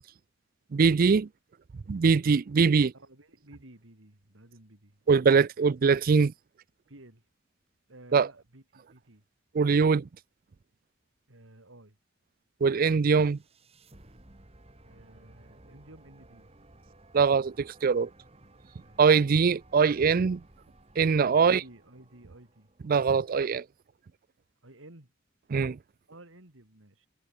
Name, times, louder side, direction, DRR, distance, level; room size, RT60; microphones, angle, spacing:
voice 1, 0.7-1.3 1.9-2.9 5.1-6.3 8.1-8.3 9.5-10.1 12.6-13.4 17.1-18.1 19.0-20.4 21.0-21.6 22.9-23.6 25.5-25.8, right 5 dB, 45° right, 0.4 m, -22 dB
voice 2, 2.9-5.0 6.9-7.2 7.9-9.2 11.3-12.0 14.8-16.5 18.7-19.0 21.4-22.7 24.6-25.1 26.1-27.1, right 1 dB, 80° right, 3.4 m, -53 dB
sound 1, 13.0-23.2, right 1 dB, 30° right, 2.0 m, -57 dB
head